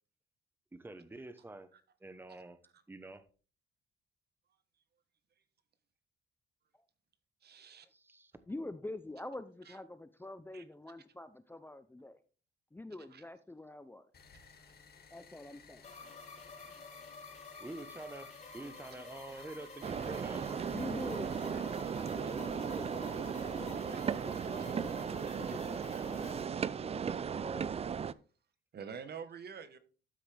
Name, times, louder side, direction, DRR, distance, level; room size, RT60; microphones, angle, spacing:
voice 1, 0.7-1.7 2.0-2.6 2.9-3.2 7.9-8.3 17.6-20.8, right 2 dB, 10° right, 1.0 m, -47 dB
voice 2, 7.4-7.9 9.7-9.8 10.5-10.6 13.1-13.2 23.9-24.5 28.7-29.8, right 6 dB, 55° right, 1.3 m, -47 dB
voice 3, 8.5-12.2 12.7-14.1 15.1-15.8 20.6-23.9 24.2-27.9, left 2 dB, 10° left, 0.6 m, -46 dB
sound 1, 14.1-21.7, left 5 dB, 55° left, 1.8 m, -59 dB
sound 2, 15.8-26.5, left 4 dB, 35° left, 3.0 m, -50 dB
sound 3, 19.8-28.1, right 7 dB, 30° right, 0.4 m, -36 dB
12.5 x 5.8 x 3.4 m
cardioid pair, 90°, 20 cm